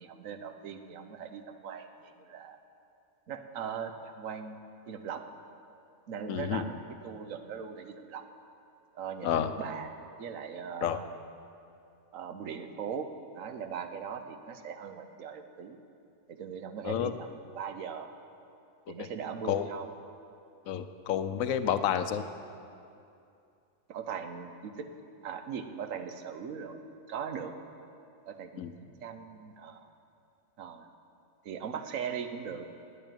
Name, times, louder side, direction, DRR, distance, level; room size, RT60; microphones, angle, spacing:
voice 1, 0.0-2.6 3.3-4.6 4.9-5.2 6.1-8.2 8.9-11.1 12.1-13.1 13.3-15.8 16.3-18.1 18.9-19.9 21.9-22.0 23.9-24.9 25.2-26.8 27.1-27.5 28.3-29.9 30.6-30.9 31.4-32.6, right 7 dB, 75° right, 8 dB, 1.1 m, -40 dB
voice 2, 6.3-6.6 9.2-9.5 10.8-11.0 16.8-17.1 19.0-19.1 19.4-19.6 20.7-22.2 28.6-28.7, left 9 dB, 80° left, 11 dB, 1.0 m, -30 dB
9.6 x 8.3 x 8.8 m, 2.6 s
omnidirectional pair, 1.4 m